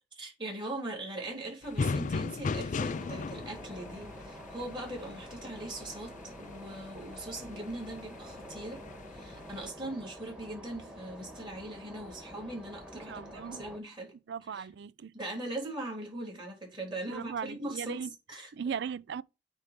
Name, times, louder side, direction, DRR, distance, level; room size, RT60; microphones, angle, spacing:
voice 1, 0.0-8.9 9.1-14.1 14.4-14.7 15.1-18.5, right 1 dB, 25° right, 3.4 m, -40 dB
sound 1, 1.6-9.7, left 4 dB, 45° left, 0.4 m, -38 dB
sound 2, 2.9-13.8, equal, 5° right, 1.6 m, -47 dB
voice 2, 13.1-13.6 14.3-15.1 17.1-18.1 18.5-19.2, right 7 dB, 65° right, 0.4 m, -38 dB
9.0 x 3.8 x 5.2 m
head